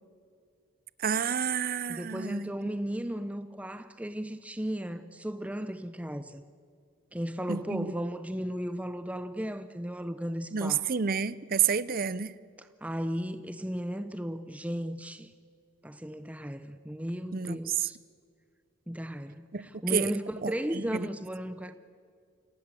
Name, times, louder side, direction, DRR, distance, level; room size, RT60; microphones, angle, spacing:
voice 1, 1.0-2.5 7.5-7.9 10.5-12.3 17.3-17.9 19.5-20.1 20.4-21.1, right 7 dB, 45° right, 0.6 m, -30 dB
voice 2, 1.9-6.4 7.1-10.8 12.6-15.3 15.8-18.0 18.9-21.7, equal, 5° right, 0.7 m, -35 dB
29.0 x 19.0 x 7.6 m
head